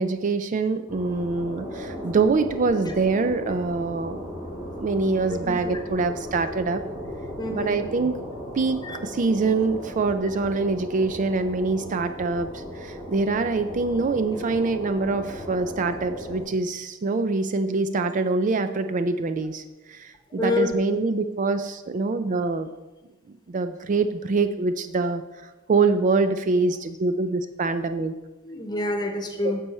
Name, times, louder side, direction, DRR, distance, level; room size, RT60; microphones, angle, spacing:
voice 1, 0.0-4.2 4.8-6.8 7.5-8.1 8.5-19.6 19.9-22.7 23.5-25.2 25.7-28.1 29.4-29.5, right 3 dB, 40° right, 9 dB, 0.4 m, -24 dB
sound 1, 0.9-16.4, equal, 15° right, 1.8 m, -36 dB
voice 2, 5.3-5.8 7.4-7.9 8.8-9.0 20.3-20.7 28.4-29.6, left 2 dB, 20° left, 4 dB, 1.2 m, -28 dB
9.9 x 6.9 x 4.2 m, 1.2 s
head